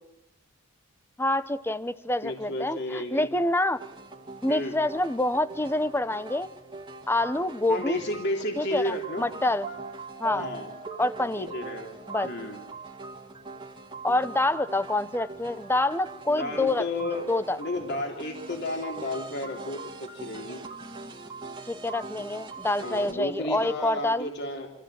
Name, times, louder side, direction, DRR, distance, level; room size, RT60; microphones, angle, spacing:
voice 1, 1.2-3.8 4.4-6.5 7.1-8.0 8.6-9.7 10.2-10.5 11.0-11.5 12.1-12.3 14.0-17.6 21.7-24.3, left 2 dB, 10° left, 14 dB, 0.9 m, -27 dB
voice 2, 2.2-3.3 4.5-4.7 7.7-9.4 10.3-10.7 11.4-12.0 12.2-12.6 16.3-17.3 17.6-20.6 22.8-24.7, left 1 dB, 55° left, 2 dB, 3.1 m, -32 dB
sound 1, 3.7-23.1, right 3 dB, 25° right, 2.1 m, -42 dB
26.5 x 15.5 x 9.0 m, 0.91 s
head